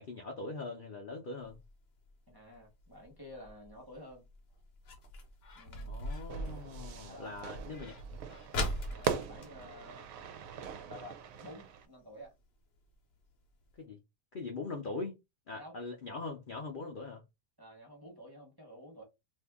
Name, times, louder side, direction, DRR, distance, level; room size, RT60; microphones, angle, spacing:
voice 1, 0.0-1.6 5.7-7.9 13.8-14.0 14.3-15.2 15.5-17.2, left 3 dB, 70° left, 0.5 m, -41 dB
sound 1, 1.4-10.7 11.0-11.1 11.3-11.7 12.2-12.3 12.8-12.9 13.2-13.3 13.7-13.8, equal, 50° left, 0.8 m, -41 dB
voice 2, 2.3-4.3 5.5-6.0 7.0-7.9 8.9-10.1 10.8-12.3 15.5-15.7 17.6-19.0, left 1 dB, 15° right, 0.9 m, -51 dB
Fire / Fireworks, 6.3-11.9, right 7 dB, 70° right, 0.9 m, -41 dB
2.7 x 2.6 x 3.5 m
omnidirectional pair, 1.8 m